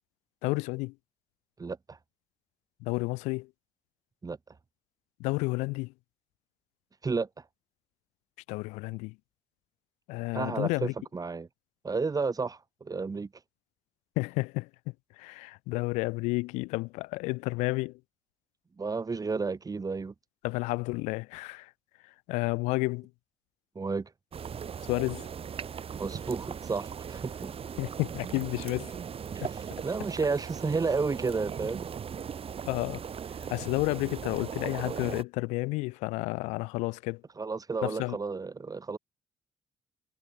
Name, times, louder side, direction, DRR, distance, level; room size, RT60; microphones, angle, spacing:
voice 1, 0.4-0.9 2.8-3.5 5.2-5.9 8.5-9.2 10.1-10.9 14.2-18.0 20.4-21.7 22.0-23.1 24.9-25.3 27.8-29.0 29.4-29.5 32.7-33.0 33.5-37.2 37.8-38.2, left 24 dB, 85° left, 1.4 m, -31 dB
voice 2, 1.6-2.0 4.2-4.4 7.0-7.3 10.3-11.5 11.8-13.3 18.8-20.1 23.7-24.1 25.9-27.5 29.4-31.8 37.4-39.0, right 4 dB, 30° right, 1.1 m, -32 dB
sound 1, 24.3-35.2, right 7 dB, 55° right, 5.1 m, -38 dB
hypercardioid pair, 50°, 12 cm